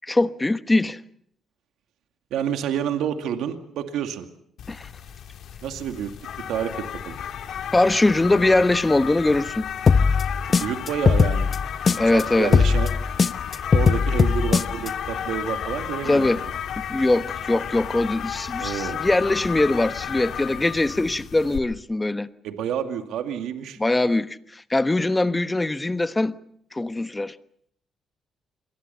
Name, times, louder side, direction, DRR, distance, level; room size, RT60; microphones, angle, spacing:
voice 1, 0.1-1.0 4.7-4.9 7.7-9.7 12.0-12.5 16.0-16.4 16.9-22.3 23.8-26.3 26.7-27.3, left 2 dB, 15° left, 1.2 m, -22 dB
voice 2, 2.3-4.3 5.6-6.1 6.5-7.2 10.6-11.6 12.1-12.9 13.7-16.5 18.6-19.0 22.4-23.8, right 9 dB, 85° right, 2.2 m, -29 dB
sound 1, 4.6-21.6, left 9 dB, 70° left, 2.6 m, -33 dB
sound 2, 9.9-12.2 12.5-14.9, left 5 dB, 40° left, 1.0 m, -19 dB
28.5 x 22.5 x 5.7 m
cardioid pair, 90°, 0 cm